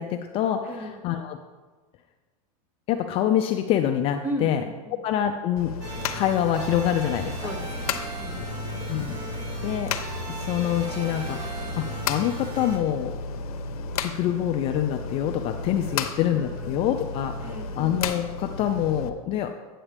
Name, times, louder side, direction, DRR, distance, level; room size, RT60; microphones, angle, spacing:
voice 1, 0.0-1.4 2.9-4.6 5.0-5.7 6.1-7.4 8.9-9.2 9.6-9.9 10.3-13.1 14.0-17.3 17.8-19.5, left 10 dB, 30° left, 6 dB, 0.4 m, -26 dB
voice 2, 0.7-1.0 4.2-5.0 7.4-8.8 15.8-16.8 17.4-17.9, equal, 10° right, 2 dB, 0.9 m, -37 dB
sound 1, 5.6-19.1, left 4 dB, 90° left, 0.7 m, -33 dB
sound 2, 5.8-12.8, right 1 dB, 40° right, 2.1 m, -37 dB
8.7 x 8.0 x 3.4 m, 1.4 s
supercardioid pair, 145°, 19 cm